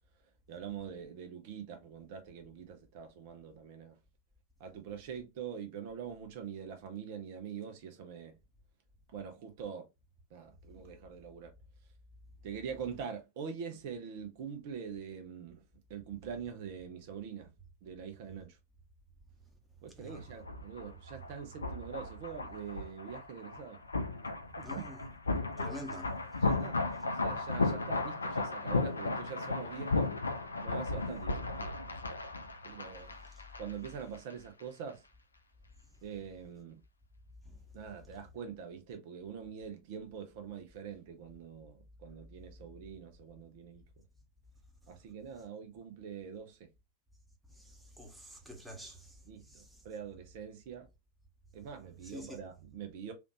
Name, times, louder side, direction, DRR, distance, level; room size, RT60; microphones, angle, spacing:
voice 1, 0.5-4.0 4.6-8.3 9.1-9.9 10.3-11.5 12.4-15.6 15.9-17.5 17.8-18.6 19.8-23.8 24.8-24.9 26.4-30.1 30.6-32.1 32.6-33.1 33.6-35.0 36.0-36.8 37.7-41.8 42.0-43.8 44.9-46.6 49.3-50.9 51.5-53.1, right 7 dB, 50° right, 0.7 m, -44 dB
sound 1, 20.1-33.9 34.1-34.3, left 3 dB, 75° left, 0.4 m, -35 dB
voice 2, 24.6-25.1 25.6-26.4 33.2-33.4 37.4-37.6 47.5-49.8 52.0-52.4, equal, 5° right, 0.9 m, -48 dB
3.4 x 2.5 x 2.9 m
figure-of-eight pair, 90°, 0 cm